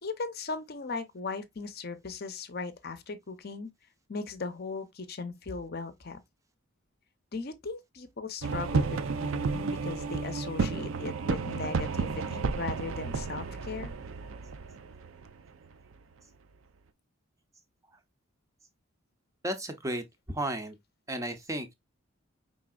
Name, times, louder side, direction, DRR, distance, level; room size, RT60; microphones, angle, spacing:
voice 1, 0.0-3.7 4.1-6.2 7.3-13.9, left 4 dB, 45° left, 0.7 m, -38 dB
sound 1, 8.4-15.9, right 4 dB, 65° right, 0.5 m, -32 dB
voice 2, 19.4-20.8 21.1-21.7, right 1 dB, 15° right, 0.6 m, -34 dB
5.1 x 3.6 x 2.3 m
head